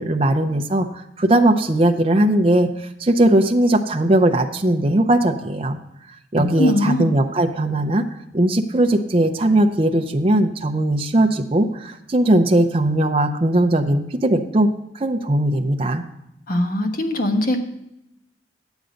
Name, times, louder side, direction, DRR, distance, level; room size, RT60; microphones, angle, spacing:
voice 1, 0.0-5.8 6.3-8.1 8.3-14.7 14.9-16.0, right 1 dB, 30° right, 5 dB, 0.6 m, -19 dB
voice 2, 6.6-7.1 16.5-17.6, left 1 dB, 50° left, 5 dB, 1.2 m, -20 dB
10.0 x 8.1 x 5.1 m, 0.83 s
head